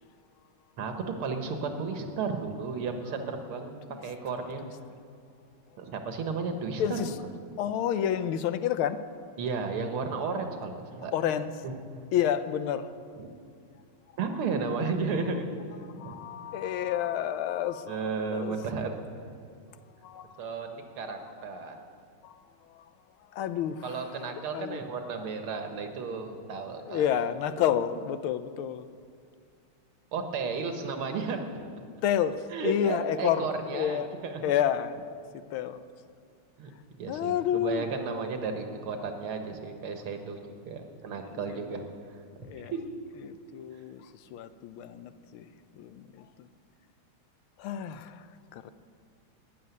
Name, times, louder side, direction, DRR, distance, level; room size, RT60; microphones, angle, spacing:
voice 1, 1.2-3.7 4.0-4.6 5.8-7.0 9.4-11.1 11.6-11.7 13.2-13.3 14.2-15.5 16.0-16.2 17.9-18.9 20.4-21.8 23.8-27.0 30.1-31.4 32.5-34.4 36.6-36.7 37.0-41.8 42.6-42.8, right 4 dB, 80° right, 2.2 m, -33 dB
voice 2, 6.8-7.1 7.6-9.0 11.1-11.5 12.1-12.9 16.0-18.0 18.3-18.6 20.0-20.4 22.2-22.4 22.7-22.8 23.3-24.0 24.5-24.8 26.9-28.9 32.0-33.5 33.7-34.1 34.4-34.9 35.5-35.8 37.1-37.9 41.3-41.9 42.5-42.7 43.2-44.1 44.3-45.5 45.7-46.5 47.6-48.2 48.5-48.7, left 10 dB, 80° left, 1.5 m, -29 dB
13.0 x 10.0 x 9.5 m
omnidirectional pair, 2.4 m